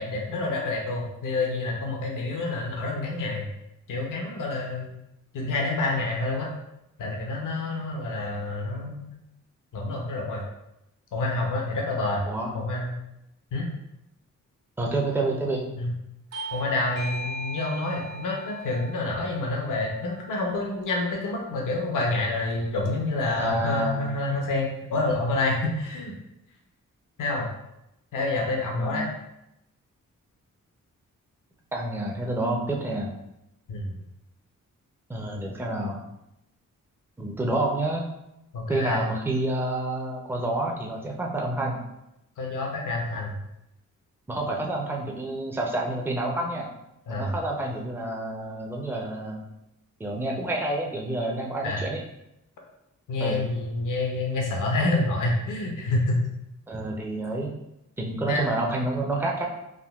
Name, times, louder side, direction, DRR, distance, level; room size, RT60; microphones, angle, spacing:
voice 1, 0.0-3.5 3.9-4.9 5.3-6.5 7.0-9.1 9.7-10.4 11.1-12.3 12.5-13.0 13.5-13.7 15.7-15.9 16.5-26.2 27.2-27.5 28.1-29.1 33.7-34.0 38.5-39.1 42.4-43.4 47.1-47.4 51.6-51.8 53.1-56.2 58.3-58.5, left 2 dB, 75° left, 0 dB, 0.7 m, -28 dB
voice 2, 14.8-15.7 23.4-24.1 28.8-29.1 31.7-33.1 35.1-36.0 37.2-38.1 38.7-41.8 44.3-46.7 47.1-49.4 50.0-52.0 53.2-53.4 56.7-57.5 58.0-59.5, right 2 dB, 5° right, 0 dB, 0.5 m, -28 dB
Bell / Doorbell, 16.3-21.4, right 1 dB, 50° right, 0.7 m, -39 dB
3.5 x 2.2 x 2.3 m, 0.86 s
cardioid pair, 80°, 32 cm